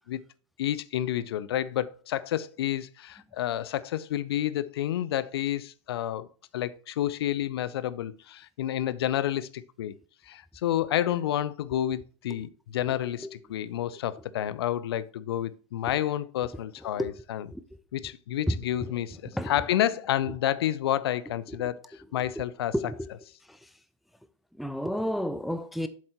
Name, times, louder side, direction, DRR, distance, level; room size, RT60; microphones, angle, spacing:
voice 1, 0.6-6.3 6.5-9.9 10.3-17.5 17.9-22.8, left 12 dB, 55° left, 0.6 m, -30 dB
voice 2, 22.7-23.1 24.6-25.9, equal, ahead, 0.4 m, -30 dB
7.8 x 7.4 x 2.9 m
figure-of-eight pair, 100°, 16 cm